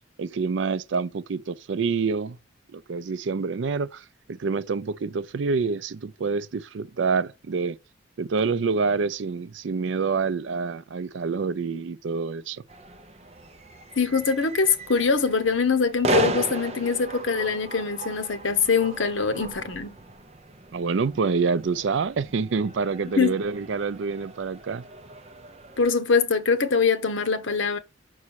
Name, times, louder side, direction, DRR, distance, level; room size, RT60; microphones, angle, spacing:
voice 1, 0.2-2.4 2.7-7.8 8.2-12.6 20.7-24.8, right 5 dB, 65° right, 0.4 m, -27 dB
sound 1, 12.7-25.9, right 2 dB, 30° right, 0.7 m, -35 dB
voice 2, 14.0-20.0 23.2-23.3 25.8-27.8, left 5 dB, 70° left, 1.0 m, -23 dB
6.2 x 4.2 x 6.3 m
head